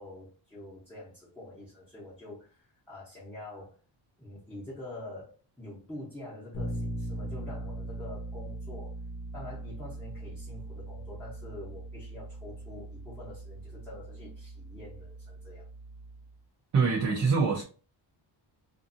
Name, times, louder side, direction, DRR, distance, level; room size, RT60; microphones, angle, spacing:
voice 1, 0.0-3.8 4.2-9.0 9.3-15.7, left 1 dB, 5° left, 0.9 m, -46 dB
Bass guitar, 6.5-16.4, right 1 dB, 40° left, 0.8 m, -40 dB
voice 2, 16.7-17.6, right 4 dB, 35° right, 0.6 m, -24 dB
2.6 x 2.5 x 2.6 m
wide cardioid pair, 150°, 49 cm